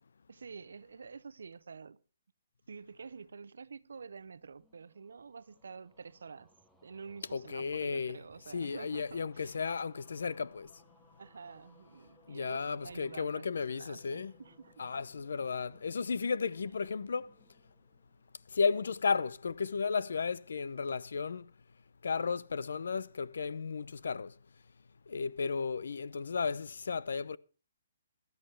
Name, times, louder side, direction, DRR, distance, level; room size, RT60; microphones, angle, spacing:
voice 1, 0.3-2.0 2.7-6.5 6.8-9.6 11.2-14.9, right 5 dB, 90° right, 0.7 m, -48 dB
sound 1, 4.3-18.8, left 1 dB, 5° left, 1.0 m, -66 dB
voice 2, 7.3-8.2 8.5-10.8 12.3-14.3 14.8-17.3 18.5-21.5 22.0-24.3 25.1-27.4, left 5 dB, 75° left, 0.6 m, -34 dB
16.5 x 13.0 x 3.3 m
hypercardioid pair, 175°, 0 cm